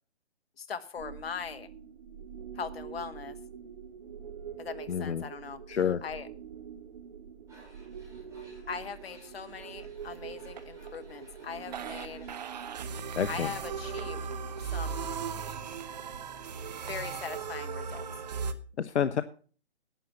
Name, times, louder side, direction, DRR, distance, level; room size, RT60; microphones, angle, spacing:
voice 1, 0.6-1.7 2.5-3.4 4.6-6.3 8.7-12.3 13.3-14.2 14.7-15.0 16.9-18.0, left 6 dB, 60° left, 11 dB, 1.5 m, -40 dB
sound 1, 1.0-18.5, right 6 dB, 40° right, 0.9 m, -40 dB
voice 2, 4.9-5.2 5.7-6.0 13.2-13.5 18.8-19.2, left 8 dB, 80° left, 13 dB, 0.8 m, -28 dB
Tools, 7.5-15.4, equal, 10° right, 4.6 m, -58 dB
11.0 x 8.8 x 5.9 m, 0.40 s
hypercardioid pair, 160°, 34 cm